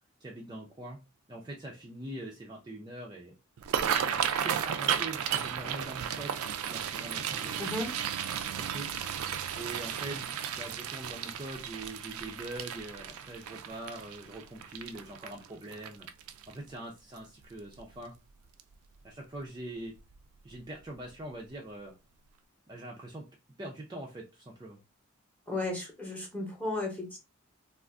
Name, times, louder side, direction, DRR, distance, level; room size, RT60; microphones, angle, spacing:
voice 1, 0.2-1.0 1.3-3.3 3.8-7.6 8.5-8.9 9.5-16.1 16.5-18.1 19.0-19.9 20.4-21.9 22.7-23.3 23.6-24.8, right 1 dB, 20° right, -2 dB, 0.4 m, -43 dB
sound 1, 3.6-16.7 17.2-17.4 17.8-18.2 18.6-18.7 20.0-20.2 20.5-20.6 21.1-21.2, right 8 dB, 85° right, 0.4 m, -34 dB
voice 2, 25.5-27.2, left 2 dB, 5° left, 0 dB, 0.8 m, -34 dB
2.4 x 2.4 x 3.4 m, 0.27 s
head